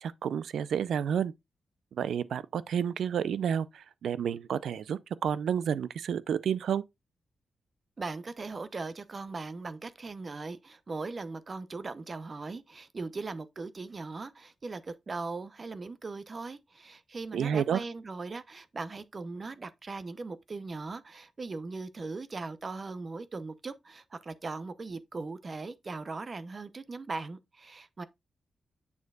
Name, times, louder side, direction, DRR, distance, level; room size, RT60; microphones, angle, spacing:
voice 1, 0.0-1.3 1.9-6.8 17.3-17.8, right 8 dB, 85° right, 0.4 m, -30 dB
voice 2, 8.0-28.0, right 3 dB, 35° right, 0.7 m, -39 dB
7.3 x 6.5 x 2.3 m
wide cardioid pair, 120°, 0 cm